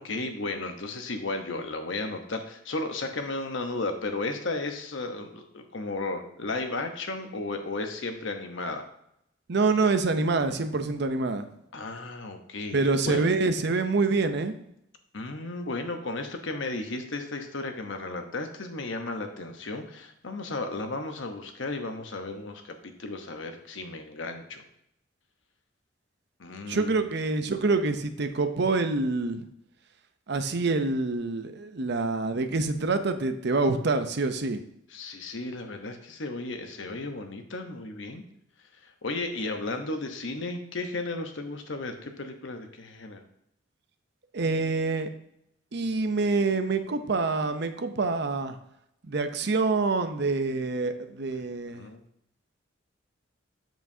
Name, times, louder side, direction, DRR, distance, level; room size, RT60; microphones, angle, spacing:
voice 1, 0.0-8.8 11.7-12.8 13.1-13.3 15.1-24.6 26.4-27.1 34.9-38.2 38.8-43.2 51.7-52.0, left 2 dB, 70° left, 5 dB, 1.0 m, -34 dB
voice 2, 9.5-11.5 12.7-14.5 26.7-29.5 30.3-34.6 44.3-45.1 45.7-48.6 49.0-51.8, right 3 dB, 60° right, 8 dB, 0.7 m, -26 dB
7.8 x 7.3 x 2.8 m, 0.76 s
head